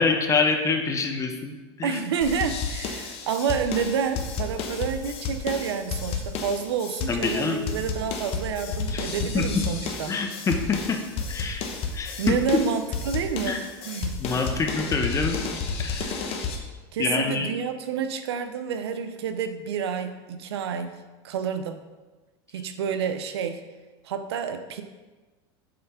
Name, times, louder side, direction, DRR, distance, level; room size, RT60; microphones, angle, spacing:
voice 1, 0.0-2.0 7.1-7.6 8.9-9.6 10.1-11.0 11.3-11.6 11.9-12.4 13.5-13.6 14.2-15.4 15.8-16.1 17.0-17.5, left 4 dB, 25° left, 4 dB, 0.9 m, -26 dB
voice 2, 1.8-10.1 12.2-14.2 16.0-16.3 16.9-21.0 21.2-21.8 22.5-23.6 24.0-24.8, right 6 dB, 90° right, 8 dB, 0.7 m, -29 dB
sound 1, 2.2-16.6, left 5 dB, 45° left, 1.1 m, -31 dB
7.7 x 3.3 x 5.7 m, 1.2 s
supercardioid pair, 115°, 13 cm